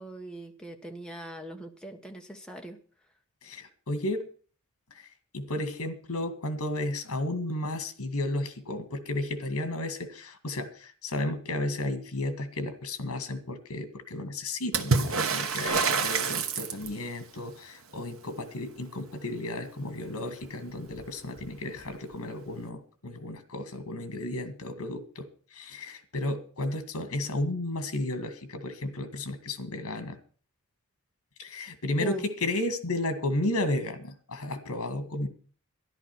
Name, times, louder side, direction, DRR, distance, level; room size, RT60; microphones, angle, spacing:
voice 1, 0.0-2.8 32.0-32.3, right 1 dB, 5° left, 2 dB, 1.4 m, -40 dB
voice 2, 3.4-4.3 5.3-25.3 25.5-30.2 31.4-35.3, left 1 dB, 80° left, 10 dB, 2.0 m, -33 dB
Water / Splash splatter, 14.7-17.1 20.4-20.5 20.8-21.5 22.6-22.7, right 4 dB, 70° right, 1.4 m, -27 dB
13.5 x 11.0 x 6.1 m, 0.42 s
head